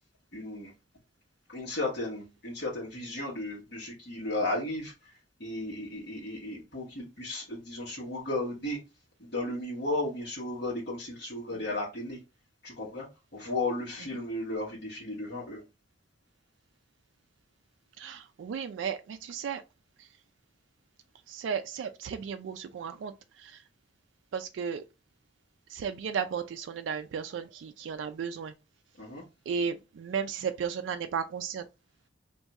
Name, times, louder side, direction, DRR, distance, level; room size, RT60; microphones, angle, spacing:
voice 1, 0.3-0.7 1.5-5.1 5.4-8.8 9.2-12.2 12.6-13.1 13.3-15.6 29.0-29.2, left 2 dB, 60° left, 1.2 m, -34 dB
voice 2, 18.0-19.6 21.3-23.1 23.4-23.6 24.3-24.8 25.7-28.5 29.5-31.7, right 6 dB, 85° right, 0.3 m, -34 dB
2.6 x 2.4 x 4.0 m
head